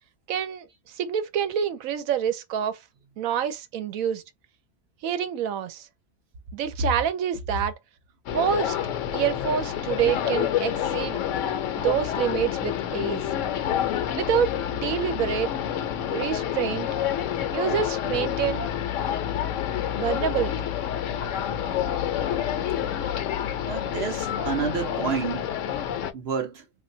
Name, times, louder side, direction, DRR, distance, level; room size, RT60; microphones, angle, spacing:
voice 1, 0.3-0.7 0.9-2.8 3.2-4.2 5.0-5.9 6.5-7.7 8.3-8.8 9.1-11.2 11.8-13.2 14.2-15.5 16.1-16.9 17.5-18.7 20.0-20.7, right 9 dB, 85° right, 1.1 m, -27 dB
sound 1, 8.3-26.1, left 10 dB, 70° left, 0.9 m, -28 dB
voice 2, 23.7-25.5 26.1-26.6, right 6 dB, 60° right, 0.7 m, -29 dB
3.2 x 2.6 x 2.6 m
omnidirectional pair, 1.4 m